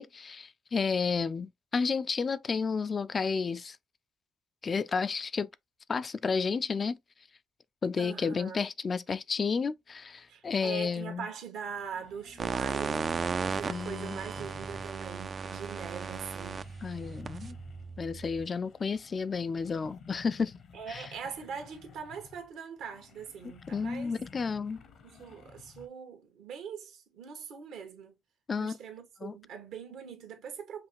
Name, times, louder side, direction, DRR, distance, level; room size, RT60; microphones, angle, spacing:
voice 1, 0.0-3.8 4.6-5.5 5.9-7.0 7.8-11.3 13.7-14.2 16.8-17.6 18.0-20.5 20.9-21.0 23.7-24.8 28.5-28.8 29.2-29.3, left 5 dB, 40° left, 0.4 m, -31 dB
voice 2, 8.0-8.6 10.3-13.1 13.5-16.7 20.7-24.2 25.0-28.2 28.6-30.9, right 6 dB, 80° right, 1.5 m, -42 dB
sound 1, 11.2-11.3 11.6-15.0 15.5-18.0 18.3-25.9, left 6 dB, 65° left, 0.9 m, -54 dB
sound 2, 12.4-18.5, right 5 dB, 45° right, 0.4 m, -35 dB
5.6 x 2.3 x 3.4 m
supercardioid pair, 80°, 0 cm